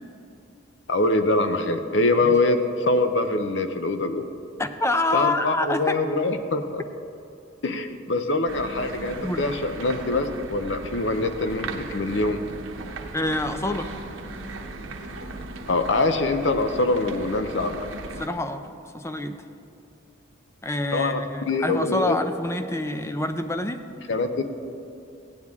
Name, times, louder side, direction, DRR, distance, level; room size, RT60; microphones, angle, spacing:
voice 1, 0.9-4.3 5.1-6.8 7.6-12.4 15.7-17.8 20.9-22.2 24.1-24.4, left 2 dB, 65° left, 8 dB, 0.6 m, -24 dB
voice 2, 4.6-6.0 9.2-9.4 13.1-13.9 18.2-18.7 18.9-19.4 20.6-23.8, left 1 dB, 15° left, 8 dB, 0.5 m, -26 dB
sound 1, 8.5-18.3, right 2 dB, 90° right, 0.9 m, -37 dB
16.5 x 9.6 x 3.6 m, 2.6 s
head